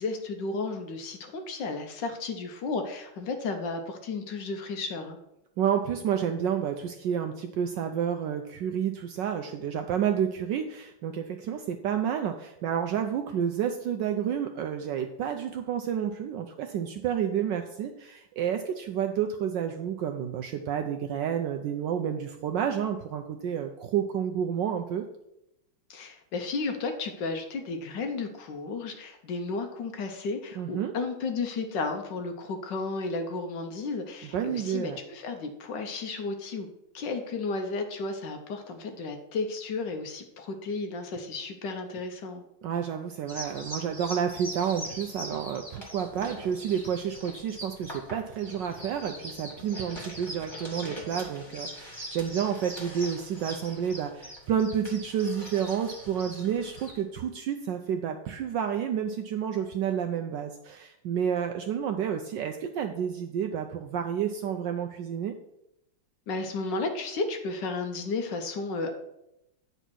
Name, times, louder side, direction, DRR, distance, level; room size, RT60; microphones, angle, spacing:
voice 1, 0.0-5.2 25.9-36.7 36.9-42.4 66.3-68.9, left 3 dB, 65° left, 6 dB, 1.3 m, -33 dB
voice 2, 5.6-25.0 30.6-30.9 34.2-35.0 42.6-65.3, right 8 dB, 75° right, 5 dB, 1.0 m, -30 dB
sound 1, 43.3-57.0, equal, 15° left, 1.9 m, -42 dB
9.1 x 4.2 x 6.1 m, 0.85 s
omnidirectional pair, 2.4 m